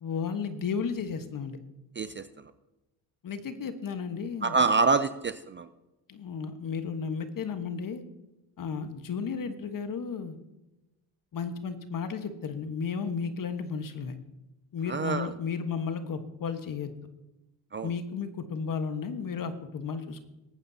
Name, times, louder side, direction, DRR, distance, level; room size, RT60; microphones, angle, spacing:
voice 1, 0.0-1.6 3.2-4.5 6.1-8.0 8.6-10.4 11.3-14.1 14.7-16.9 17.8-20.2, left 6 dB, 40° left, 8 dB, 1.4 m, -33 dB
voice 2, 4.4-5.7 14.9-15.3 17.7-17.9, right 4 dB, 25° right, 11 dB, 0.5 m, -26 dB
18.5 x 9.1 x 2.8 m, 0.99 s
supercardioid pair, 80°, 48 cm